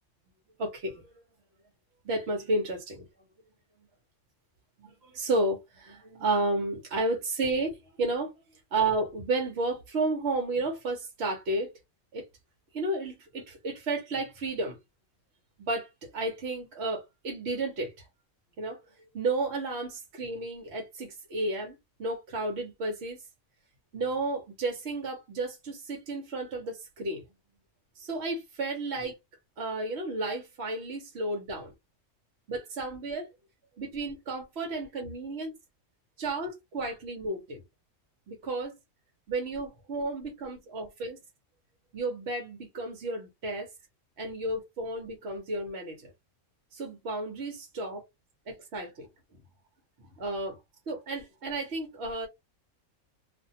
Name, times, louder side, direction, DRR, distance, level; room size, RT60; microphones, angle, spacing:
voice 1, 0.6-1.1 2.0-3.0 4.8-8.3 8.7-11.7 12.1-12.2 12.7-14.8 15.6-17.9 18.6-18.8 19.1-23.2 23.9-27.2 28.0-29.1 29.6-31.7 32.5-33.3 33.8-35.5 36.2-37.6 38.3-38.7 39.3-41.2 41.9-43.7 44.2-46.1 46.7-48.0 48.5-49.1 50.2-50.6 50.9-52.3, right 2 dB, 55° right, 0.9 m, -32 dB
2.5 x 2.2 x 2.7 m
omnidirectional pair, 1.5 m